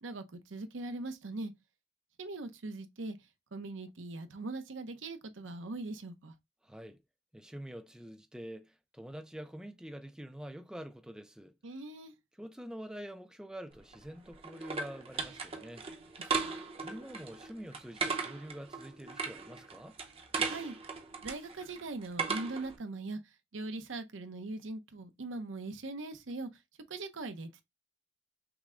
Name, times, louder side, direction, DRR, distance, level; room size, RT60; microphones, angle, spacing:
voice 1, 0.0-1.5 2.2-3.2 3.5-6.3 11.6-12.1 16.4-16.7 20.4-20.8 21.2-23.2 23.5-26.5 26.9-27.6, right 2 dB, 85° right, 0.7 m, -41 dB
voice 2, 6.6-7.0 7.3-11.5 12.4-15.8 16.8-19.9, equal, 5° right, 0.4 m, -46 dB
sound 1, 13.8-22.8, right 5 dB, 30° right, 0.8 m, -38 dB
5.8 x 2.2 x 3.7 m
head